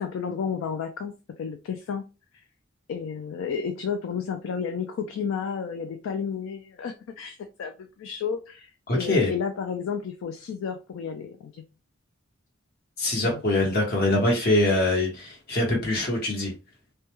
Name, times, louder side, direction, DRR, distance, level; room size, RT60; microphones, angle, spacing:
voice 1, 0.0-2.0 2.9-11.6 13.2-13.8, left 6 dB, 80° left, 6 dB, 0.3 m, -32 dB
voice 2, 8.9-9.3 13.0-16.5, left 2 dB, 55° left, -1 dB, 1.0 m, -23 dB
2.2 x 2.1 x 2.9 m, 0.32 s
head